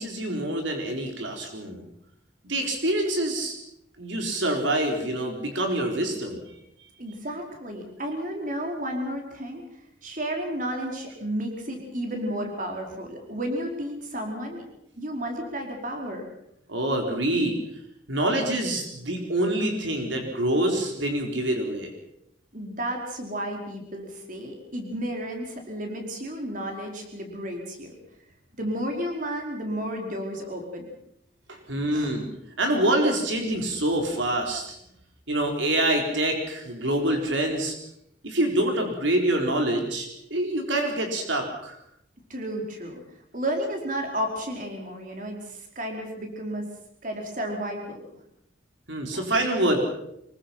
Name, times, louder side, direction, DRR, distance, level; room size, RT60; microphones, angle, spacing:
voice 1, 0.0-1.8 2.4-3.6 4.0-6.4 16.7-17.6 18.1-21.9 31.5-32.2 32.6-34.7 35.3-37.7 38.2-41.8 48.9-49.8, right 1 dB, 80° right, 3 dB, 4.1 m, -26 dB
voice 2, 7.0-9.6 10.0-14.6 14.9-16.2 22.5-27.9 28.6-30.9 31.9-32.1 42.3-43.0 43.3-46.7 47.0-48.1 49.1-49.2, equal, 45° right, 2 dB, 4.9 m, -32 dB
25.5 x 22.5 x 5.9 m, 0.76 s
head